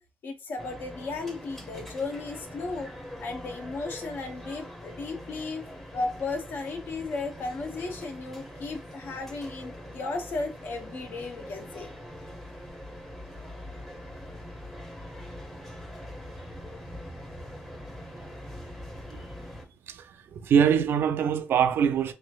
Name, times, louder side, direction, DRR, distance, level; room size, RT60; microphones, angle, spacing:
voice 1, 0.2-2.9 3.2-5.6 5.9-11.9, left 3 dB, 60° left, 0.7 m, -35 dB
sound 1, 0.6-19.6, equal, 10° left, 0.7 m, -43 dB
voice 2, 19.9-22.1, right 8 dB, 65° right, 0.4 m, -24 dB
3.3 x 3.1 x 2.3 m
cardioid pair, 135°, 4 cm